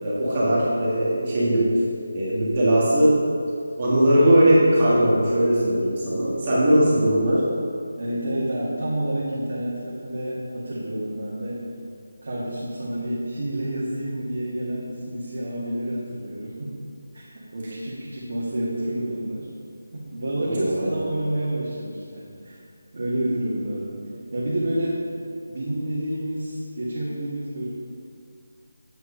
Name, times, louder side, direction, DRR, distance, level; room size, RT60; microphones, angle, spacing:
voice 1, 0.0-1.7 2.1-3.2 3.8-7.4 20.5-20.9, right 1 dB, 30° right, -8 dB, 1.7 m, -19 dB
voice 2, 8.0-11.6 12.2-16.7 17.1-17.2 17.5-19.5 19.9-22.6 22.9-24.0 24.3-25.0 25.5-27.7, right 1 dB, 55° right, -8 dB, 1.8 m, -29 dB
8.4 x 4.6 x 5.5 m, 2.3 s
figure-of-eight pair, 170°, 0 cm